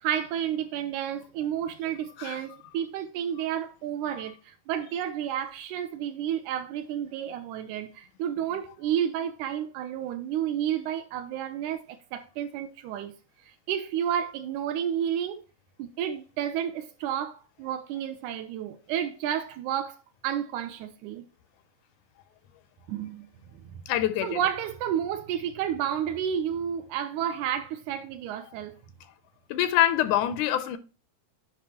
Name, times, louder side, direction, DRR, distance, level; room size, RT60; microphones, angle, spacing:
voice 1, 0.0-13.1 13.7-15.4 15.8-21.2 22.9-23.3 23.9-28.8, right 9 dB, 85° right, 2.1 m, -31 dB
voice 2, 23.9-24.4 29.5-30.8, left 12 dB, 85° left, 2.1 m, -25 dB
9.3 x 5.2 x 2.9 m
omnidirectional pair, 3.4 m